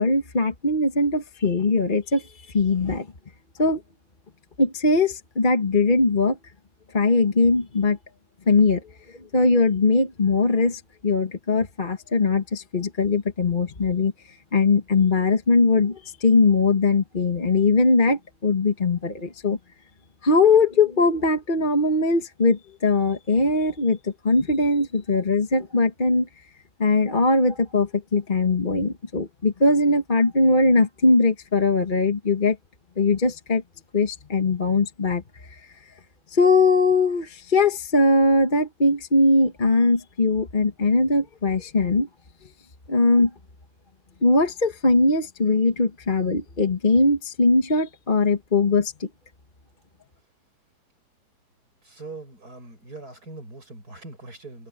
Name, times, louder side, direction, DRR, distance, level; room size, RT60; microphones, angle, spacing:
voice 1, 0.0-3.1 3.6-3.8 4.6-6.4 6.9-8.0 8.5-14.1 14.5-19.6 20.2-26.3 26.8-32.6 33.0-33.6 33.9-35.7 36.3-42.1 42.9-43.3 44.2-49.1, left 3 dB, 30° left, 1.6 m, -21 dB
voice 2, 51.8-54.7, right 3 dB, 75° right, 7.7 m, -41 dB
omnidirectional pair, 1.7 m